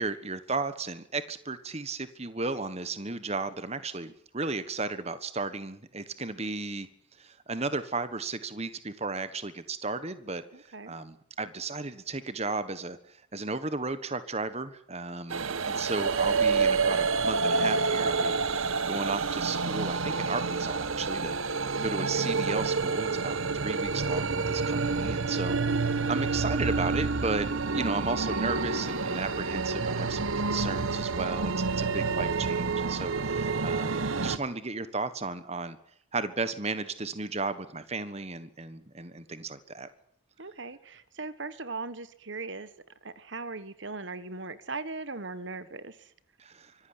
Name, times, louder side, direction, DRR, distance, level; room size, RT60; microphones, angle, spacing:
voice 1, 0.0-6.9 7.2-27.5 27.7-35.8 36.1-39.9 46.4-46.7, right 3 dB, 30° right, 13 dB, 1.4 m, -34 dB
voice 2, 10.5-10.9 16.3-16.6 21.7-22.4 34.0-34.4 40.4-42.7 43.0-46.1, right 3 dB, 55° right, 14 dB, 1.4 m, -39 dB
sound 1, 15.3-34.4, right 4 dB, 75° right, 1.3 m, -28 dB
25.0 x 14.5 x 9.8 m, 0.68 s
head